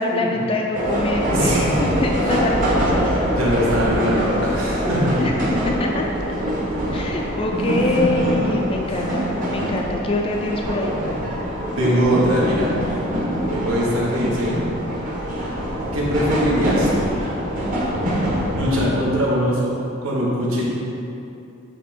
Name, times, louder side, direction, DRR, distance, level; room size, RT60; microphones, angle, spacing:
voice 1, 0.0-3.2 5.1-6.1 6.9-11.0, left 2 dB, 25° left, 0 dB, 0.4 m, -24 dB
sound 1, 0.7-18.9, equal, 40° right, 1.3 m, -24 dB
voice 2, 1.3-1.8 2.2-2.3 3.0-5.2 8.3-8.4 11.8-12.7 13.5-14.6 15.9-17.1 18.5-19.8 20.0-20.6, equal, 80° right, -5 dB, 1.4 m, -21 dB
8.2 x 3.4 x 4.4 m, 2.8 s
head